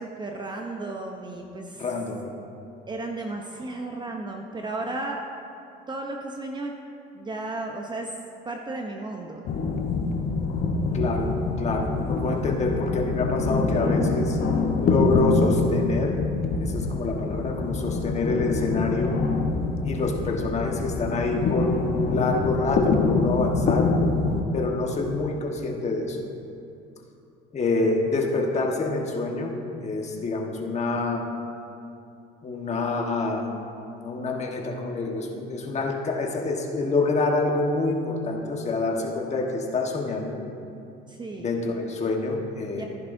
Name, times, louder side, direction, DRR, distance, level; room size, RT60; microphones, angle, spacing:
voice 1, 0.0-1.9 2.9-5.2 5.9-6.7 7.1-8.1 8.5-9.4 41.1-41.5 42.8-42.9, right 2 dB, 20° right, 1 dB, 0.8 m, -34 dB
voice 2, 1.8-2.2 10.9-14.4 14.8-16.2 16.6-19.2 19.8-23.9 24.5-26.2 27.5-29.6 29.8-31.3 32.4-33.5 34.0-40.4 41.4-42.9, left 3 dB, 35° left, 1 dB, 1.4 m, -27 dB
sound 1, 9.5-24.4, left 3 dB, 50° left, 1.0 m, -25 dB
14.5 x 10.0 x 2.7 m, 2.7 s
cardioid pair, 110°, 21 cm